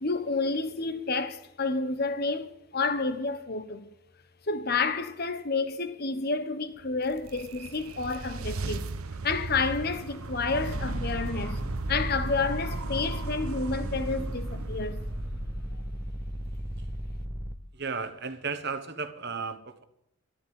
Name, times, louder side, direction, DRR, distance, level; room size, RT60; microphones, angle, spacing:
voice 1, 0.0-3.8 4.5-8.9 9.2-11.6 11.9-15.0, left 4 dB, 45° left, 1.1 m, -30 dB
sound 1, 6.9-16.1, right 3 dB, 80° right, 0.9 m, -37 dB
sound 2, 10.7-17.6, equal, 5° right, 0.8 m, -35 dB
voice 2, 17.7-19.8, right 4 dB, 50° right, 1.3 m, -34 dB
13.5 x 11.5 x 7.7 m
head